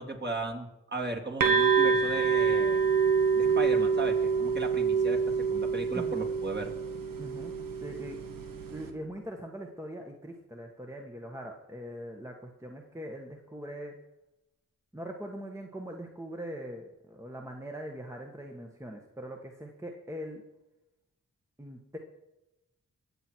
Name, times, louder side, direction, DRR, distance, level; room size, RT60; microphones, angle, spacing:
voice 1, 0.0-2.8 3.3-6.7, right 2 dB, 30° right, 1 dB, 3.2 m, -36 dB
sound 1, 1.4-8.9, right 5 dB, 85° right, 1.7 m, -26 dB
voice 2, 5.9-6.3 7.2-7.5 7.8-8.2 8.7-13.9 14.9-20.4 21.6-22.0, equal, 10° right, 1 dB, 1.6 m, -41 dB
22.0 x 7.9 x 4.7 m, 0.95 s
cardioid pair, 55°, 33 cm